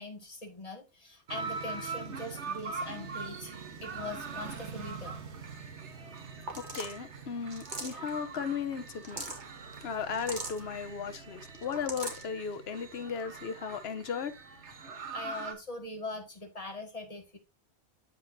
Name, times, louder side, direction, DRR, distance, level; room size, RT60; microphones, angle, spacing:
voice 1, 0.0-3.5 3.8-5.2 15.1-17.4, left 2 dB, 35° left, 2.0 m, -42 dB
sound 1, 1.3-15.5, right 5 dB, 80° right, 1.6 m, -42 dB
voice 2, 6.5-9.2 9.8-14.3, left 6 dB, 65° left, 1.1 m, -36 dB
sound 2, 6.5-7.0 7.5-8.1 8.9-9.4 10.1-10.6 11.5-12.2, right 2 dB, 45° right, 1.8 m, -39 dB
13.5 x 4.6 x 2.7 m
omnidirectional pair, 1.2 m